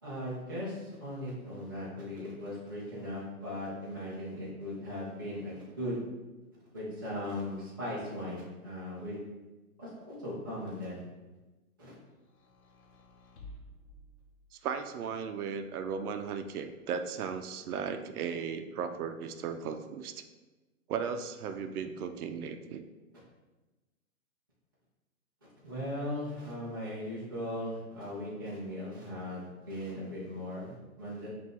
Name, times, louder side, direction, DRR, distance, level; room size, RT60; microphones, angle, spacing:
voice 1, 0.0-6.0 6.7-9.2 9.8-11.0 11.8-11.9 25.6-31.3, left 1 dB, 15° right, -10 dB, 0.4 m, -38 dB
sound 1, 12.2-14.9 15.8-16.8, left 1 dB, 50° left, 0.9 m, -54 dB
voice 2, 14.6-20.2 20.9-22.8, right 6 dB, 80° right, 8 dB, 0.6 m, -36 dB
5.4 x 2.5 x 3.0 m, 1.2 s
hypercardioid pair, 170°, 43 cm